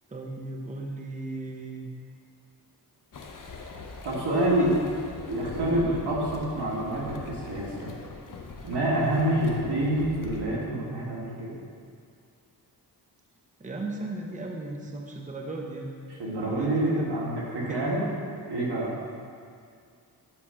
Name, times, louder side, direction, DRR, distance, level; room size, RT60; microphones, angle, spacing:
voice 1, 0.1-1.9 4.6-4.9 5.6-6.0 13.6-15.9 16.4-17.1 17.7-17.8, right 2 dB, 20° right, 1 dB, 0.7 m, -36 dB
sound 1, 3.1-10.4, left 3 dB, 50° left, 0.8 m, -42 dB
voice 2, 4.0-4.7 5.3-7.9 8.6-11.5 16.1-18.1 18.5-18.9, right 1 dB, 85° right, -5 dB, 1.8 m, -27 dB
8.6 x 3.6 x 5.6 m, 2.3 s
wide cardioid pair, 110°, 40 cm